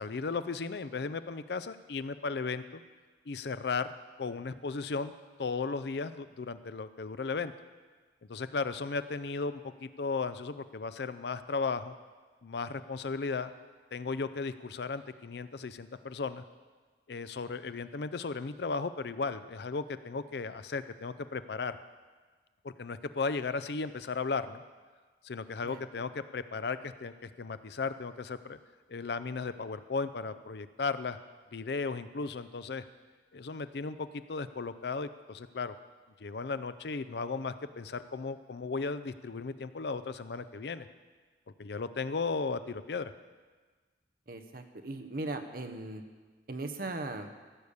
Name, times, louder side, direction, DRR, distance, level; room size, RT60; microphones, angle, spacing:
voice 1, 0.0-2.8 3.3-3.9 4.2-5.1 5.4-7.5 8.3-11.9 12.4-13.5 13.9-16.4 17.1-21.8 22.6-24.6 25.2-28.6 28.9-31.2 31.5-32.8 33.3-35.8 36.2-40.9 41.6-43.1, left 4 dB, 65° left, 13 dB, 0.5 m, -35 dB
voice 2, 44.3-46.0 46.5-47.3, right 2 dB, 55° right, 6 dB, 1.0 m, -38 dB
15.5 x 7.0 x 6.6 m, 1.4 s
head